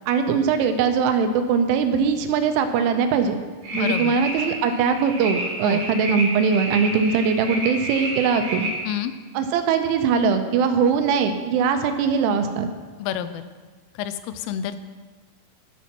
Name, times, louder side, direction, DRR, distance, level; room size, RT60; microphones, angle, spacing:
voice 1, 0.1-3.4 3.7-8.7 9.3-12.7, right 6 dB, 85° right, 7 dB, 3.1 m, -21 dB
sound 1, 3.6-8.7, right 1 dB, 55° right, 3.7 m, -30 dB
voice 2, 3.7-4.2 5.6-5.8 8.9-9.1 13.0-13.4 14.0-14.9, left 10 dB, 90° left, 11 dB, 3.1 m, -29 dB
13.0 x 5.9 x 4.3 m, 1.4 s
omnidirectional pair, 5.6 m